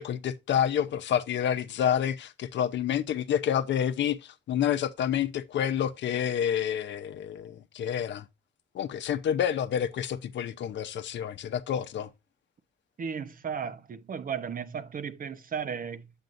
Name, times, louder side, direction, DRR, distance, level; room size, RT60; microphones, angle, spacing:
voice 1, 0.0-8.3 8.7-12.1, left 9 dB, 65° left, 0.8 m, -28 dB
voice 2, 13.0-16.1, right 7 dB, 45° right, 1.0 m, -35 dB
8.0 x 7.7 x 2.6 m
cardioid pair, 90°, 20 cm